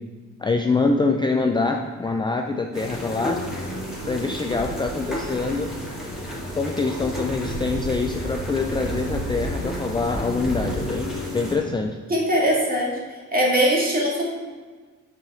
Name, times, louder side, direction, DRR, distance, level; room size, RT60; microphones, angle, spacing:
voice 1, 0.4-3.4 4.1-5.7 6.5-12.0, left 3 dB, 15° left, 3 dB, 0.4 m, -25 dB
sound 1, 2.7-11.6, equal, ahead, 2.1 m, -31 dB
voice 2, 12.1-13.0 13.3-14.3, equal, 30° right, -3 dB, 2.0 m, -21 dB
6.2 x 4.8 x 4.2 m, 1.4 s
cardioid pair, 90°, 30 cm